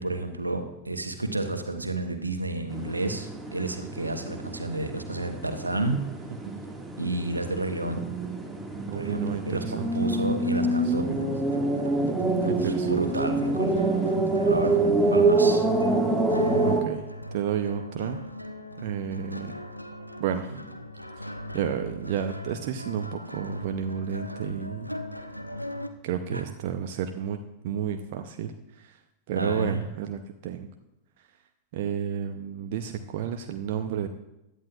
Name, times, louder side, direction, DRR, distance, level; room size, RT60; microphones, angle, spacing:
voice 1, 0.0-6.0 7.0-8.1 8.9-11.2 12.4-13.8 14.4-14.8 15.1-15.7 26.3-26.4 29.4-29.8, right 2 dB, 80° right, 7 dB, 1.2 m, -31 dB
sound 1, 2.7-16.8, right 2 dB, 5° right, 1.9 m, -26 dB
voice 2, 8.9-10.3 10.6-11.2 12.5-13.0 16.6-18.2 18.8-19.6 20.2-20.5 21.2-24.9 26.0-27.4 27.6-29.0 29.3-30.7 31.7-34.1, right 8 dB, 50° right, 7 dB, 0.7 m, -32 dB
sound 2, 10.4-25.9, left 1 dB, 90° left, 0.7 m, -40 dB
16.0 x 11.0 x 2.4 m, 0.91 s
figure-of-eight pair, 90°, 0 cm